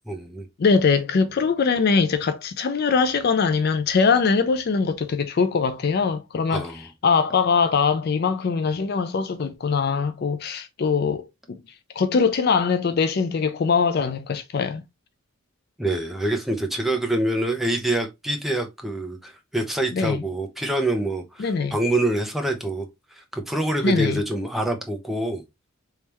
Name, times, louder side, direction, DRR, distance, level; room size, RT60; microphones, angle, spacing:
voice 1, 0.1-0.5 6.5-6.9 15.8-22.9 23.2-25.4, right 1 dB, ahead, 0.7 m, -26 dB
voice 2, 0.6-6.7 7.0-11.2 12.0-14.8 19.9-20.2 21.4-21.8 23.8-24.2, left 5 dB, 50° left, 0.4 m, -22 dB
3.5 x 3.2 x 2.9 m
head